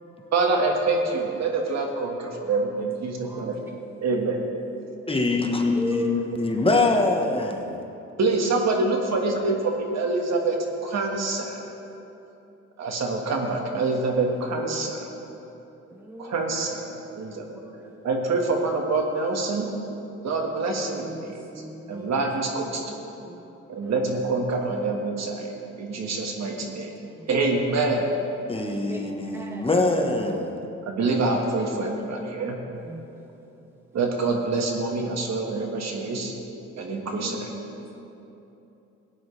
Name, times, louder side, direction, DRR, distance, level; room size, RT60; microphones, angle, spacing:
voice 1, 0.3-3.6 4.0-4.4 8.2-10.6 10.8-11.6 12.8-15.1 16.2-17.5 18.0-19.7 20.2-21.3 21.9-22.8 23.7-25.5 25.8-26.9 27.3-28.2 30.9-32.6 33.9-36.3 36.8-37.5, right 3 dB, 60° right, 2 dB, 1.7 m, -26 dB
voice 2, 5.1-7.7 28.5-30.5, left 3 dB, 20° left, 2 dB, 1.2 m, -24 dB
voice 3, 5.8-6.2 15.9-16.4 17.2-17.4 17.6-17.8 20.7-22.1 22.8-23.4 25.9-26.0 27.2-27.3 28.9-29.7 31.6-32.4 32.8-33.0 36.9-37.9, equal, 5° right, 1 dB, 0.7 m, -38 dB
17.5 x 9.5 x 3.3 m, 2.9 s
cardioid pair, 90°, 30 cm